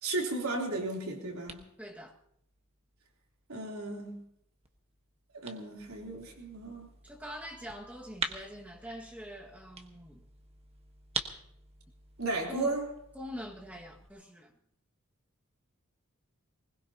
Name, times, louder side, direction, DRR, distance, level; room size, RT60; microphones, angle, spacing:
voice 1, 0.0-1.7 3.5-4.2 5.3-6.9 12.2-12.8, right 2 dB, 85° right, 3.4 m, -34 dB
sound 1, 0.6-14.1, right 4 dB, 30° right, 1.2 m, -46 dB
voice 2, 1.8-2.2 7.0-10.3 12.5-12.8 13.1-14.5, equal, 5° right, 1.8 m, -44 dB
20.5 x 20.5 x 2.9 m
head